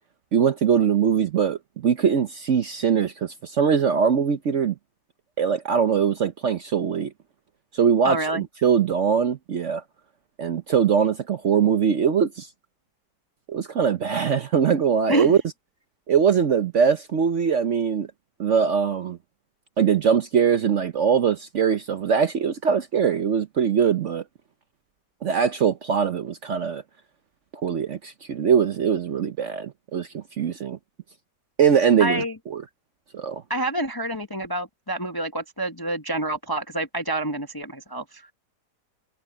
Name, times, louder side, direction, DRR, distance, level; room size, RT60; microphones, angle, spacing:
voice 1, 0.3-4.7 5.4-7.1 7.7-9.8 10.4-12.5 13.5-15.4 16.1-18.1 18.4-19.2 19.8-24.2 25.2-26.8 27.5-30.8 31.6-32.2 32.5-32.6 33.1-33.4, right 7 dB, 55° right, 1.0 m, -22 dB
voice 2, 8.0-8.4 15.1-15.3 32.0-32.3 33.5-38.2, right 1 dB, 15° left, 0.8 m, -27 dB
omnidirectional pair, 1.8 m